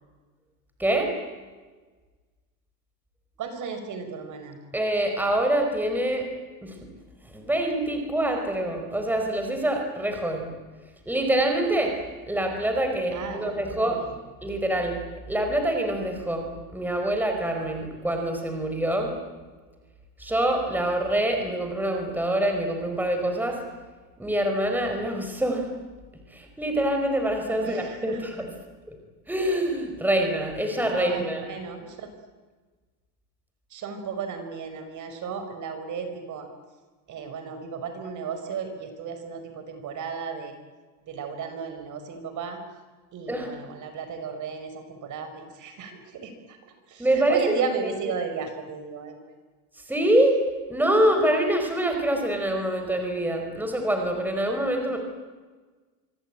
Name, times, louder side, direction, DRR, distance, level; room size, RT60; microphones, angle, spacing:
voice 1, 0.8-1.1 4.7-6.3 6.6-6.8 7.3-10.5 11.1-12.0 12.3-14.0 14.4-15.0 15.3-19.1 20.2-23.6 24.2-25.7 26.3-28.5 28.9-29.0 29.3-31.4 43.3-43.5 47.0-47.6 49.9-50.4 50.7-55.0, right 1 dB, 5° right, 4 dB, 4.7 m, -25 dB
voice 2, 3.4-4.6 13.1-14.0 27.6-28.2 30.9-32.1 33.7-36.5 37.1-40.6 41.1-42.6 43.1-49.2, right 6 dB, 35° right, 7 dB, 5.6 m, -34 dB
26.0 x 24.0 x 9.0 m, 1.4 s
supercardioid pair, 125°, 49 cm